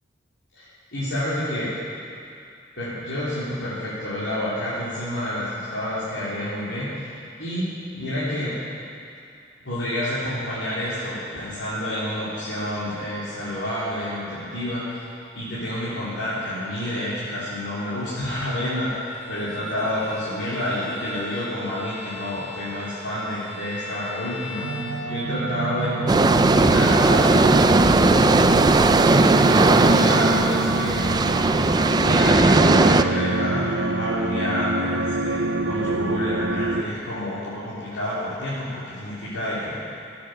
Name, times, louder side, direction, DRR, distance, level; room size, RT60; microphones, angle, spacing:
voice 1, 0.5-1.7 2.8-8.6 9.6-31.2 31.6-31.7 32.0-39.8, left 1 dB, 80° left, -12 dB, 3.9 m, -29 dB
Bowed string instrument, 18.9-25.6, left 4 dB, 30° left, 3.8 m, -40 dB
sound 1, 24.6-36.8, right 2 dB, 65° right, 0.7 m, -26 dB
sound 2, 26.1-33.0, right 3 dB, 20° right, 0.4 m, -17 dB
17.5 x 8.7 x 8.2 m, 2.5 s
head